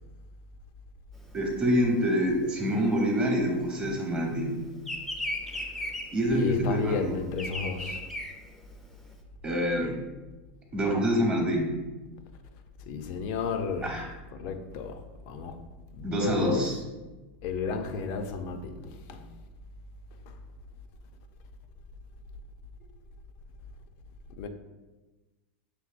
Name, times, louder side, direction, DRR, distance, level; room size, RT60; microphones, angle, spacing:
Bird vocalization bird call bird song, 1.2-4.1 4.4-9.1, left 1 dB, 5° left, 0.5 m, -36 dB
voice 1, 1.3-4.7 6.1-7.2 9.4-10.0 10.7-11.8 13.8-14.1 14.4-14.5 16.0-16.8, equal, 20° right, 1.0 m, -26 dB
voice 2, 6.3-8.0 12.9-14.0 14.3-15.0 15.3-15.6 15.9-16.6 17.4-19.3 20.3-20.4 24.4-24.5, left 5 dB, 55° left, 0.5 m, -32 dB
6.1 x 3.3 x 2.4 m
supercardioid pair, 140°, 6 cm